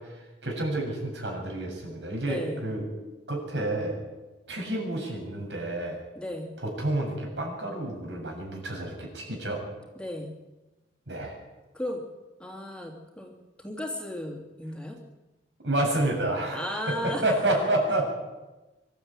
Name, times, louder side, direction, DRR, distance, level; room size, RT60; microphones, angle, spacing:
voice 1, 0.1-2.8 3.3-4.0 4.5-6.0 6.6-9.6 11.1-11.4 15.6-18.0, right 1 dB, 85° right, 0 dB, 7.3 m, -29 dB
voice 2, 2.2-2.6 6.1-6.5 9.9-10.3 11.7-12.0 12.4-13.3 13.6-15.0 16.5-17.2 17.9-18.0, left 1 dB, 5° left, 1 dB, 2.9 m, -35 dB
25.0 x 13.0 x 9.0 m, 1.1 s
head